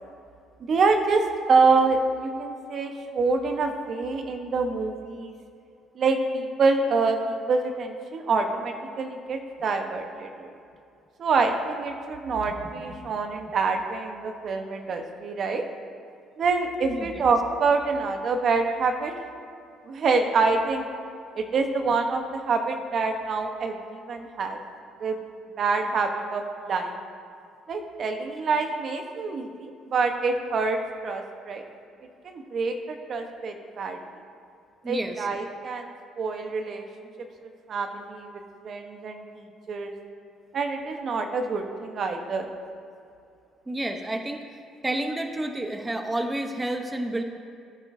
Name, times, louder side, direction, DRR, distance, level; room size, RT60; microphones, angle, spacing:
voice 1, 0.6-5.3 6.0-10.5 11.2-15.6 16.4-19.1 19.8-20.9 21.3-24.6 25.0-25.2 25.6-27.0 27.7-31.6 32.2-34.0 34.8-36.9 37.2-39.2 39.7-39.9 40.5-42.5, right 4 dB, 55° right, 5 dB, 1.0 m, -26 dB
voice 2, 16.9-17.2 34.8-35.3 43.7-44.4 44.8-47.2, right 1 dB, 15° right, 5 dB, 0.8 m, -30 dB
15.0 x 9.8 x 2.7 m, 2.5 s
supercardioid pair, 75°, 0 cm